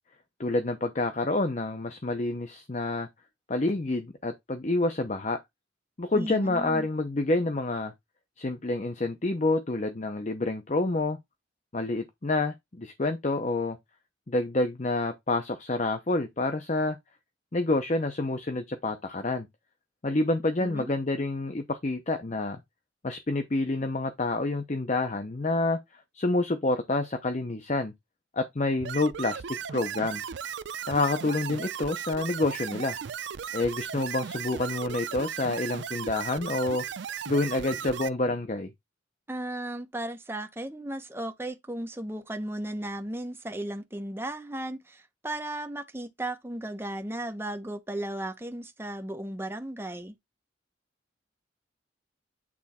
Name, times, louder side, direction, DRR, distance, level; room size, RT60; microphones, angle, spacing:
voice 1, 0.4-3.1 3.5-5.4 6.0-7.9 8.4-11.2 11.7-13.8 14.3-17.0 17.5-19.5 20.0-22.6 23.0-25.8 26.1-27.9 28.3-29.4 29.7-30.2 30.9-33.0 33.5-36.8 37.3-38.7, left 2 dB, 40° left, 0.7 m, -28 dB
voice 2, 6.1-6.9 20.6-20.9 39.3-50.1, right 1 dB, 10° right, 0.9 m, -35 dB
sound 1, 28.8-38.1, right 7 dB, 70° right, 0.5 m, -36 dB
8.5 x 3.4 x 4.2 m
head